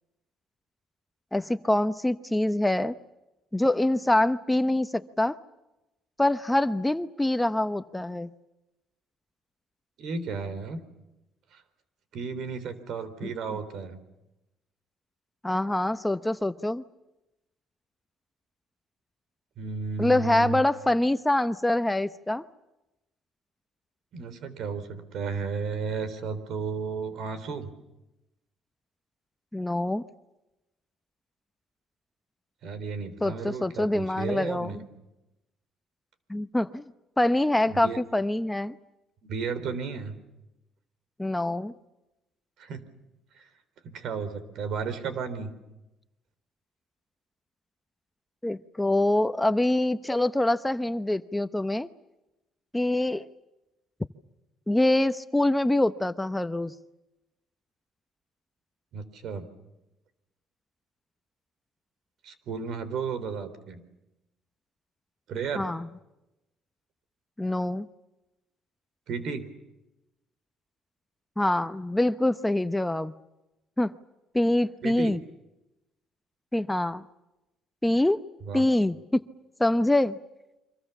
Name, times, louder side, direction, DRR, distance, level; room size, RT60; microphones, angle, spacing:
voice 1, 1.3-2.9 3.5-5.4 6.2-8.3 13.2-13.3 15.4-16.8 20.0-22.4 29.5-30.0 33.2-34.7 36.3-36.8 37.2-38.8 41.2-41.7 48.4-51.9 52.7-53.3 54.7-56.7 65.6-65.9 67.4-67.9 71.4-73.1 73.8-73.9 74.3-75.2 76.5-77.0 77.8-78.2 78.5-79.2 79.6-80.2, left 1 dB, 10° left, 11 dB, 0.8 m, -25 dB
voice 2, 10.0-10.8 11.5-11.6 12.1-14.0 19.6-20.7 24.1-27.7 32.6-34.9 37.7-38.0 39.2-40.2 42.6-42.8 43.3-43.5 43.8-45.5 58.9-59.5 62.2-63.8 65.3-65.7 69.1-69.5 74.8-75.2 78.5-78.6, right 5 dB, 70° right, 13 dB, 3.9 m, -33 dB
28.5 x 25.5 x 7.2 m, 0.96 s
cardioid pair, 95°, 0 cm